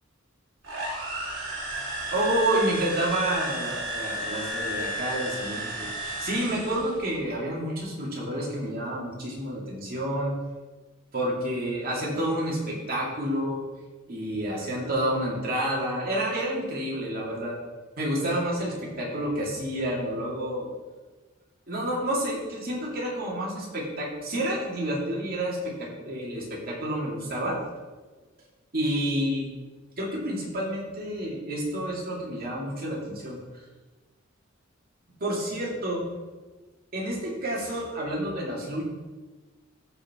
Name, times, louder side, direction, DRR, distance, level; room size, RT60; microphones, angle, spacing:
sound 1, 0.6-7.0, right 1 dB, 65° right, 2.6 m, -33 dB
voice 1, 2.1-10.3 11.1-13.6 14.1-17.5 18.0-20.7 21.7-27.6 28.7-29.5 30.0-33.4 35.2-36.0 36.9-38.8, right 1 dB, 50° right, -4 dB, 2.4 m, -29 dB
13.5 x 4.7 x 3.7 m, 1.3 s
head